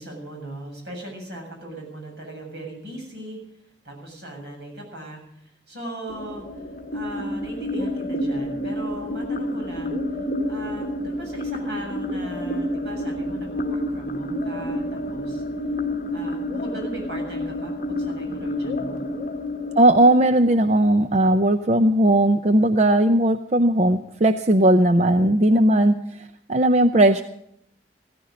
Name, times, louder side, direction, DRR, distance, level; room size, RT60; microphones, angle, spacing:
voice 1, 0.0-3.4 3.8-6.7 6.9-10.0 10.5-15.4 16.1-19.1, right 1 dB, 70° right, 1 dB, 7.4 m, -38 dB
sound 1, 6.1-21.1, left 1 dB, 50° left, 1.7 m, -29 dB
voice 2, 19.8-25.9 26.5-27.2, right 1 dB, 40° right, 9 dB, 0.6 m, -17 dB
15.5 x 14.5 x 5.2 m, 0.75 s
head